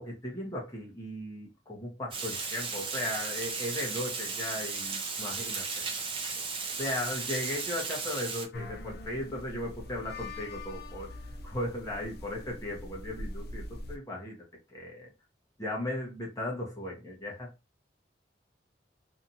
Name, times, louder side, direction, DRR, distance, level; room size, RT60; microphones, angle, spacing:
voice 1, 0.0-5.8 6.8-11.1 11.4-14.4 14.7-15.1 15.6-17.5, left 1 dB, 20° left, 0.9 m, -36 dB
Water, 2.1-8.5, right 4 dB, 30° right, 0.5 m, -35 dB
sound 1, 8.5-14.0, left 1 dB, 55° left, 0.5 m, -42 dB
2.7 x 2.4 x 2.7 m
head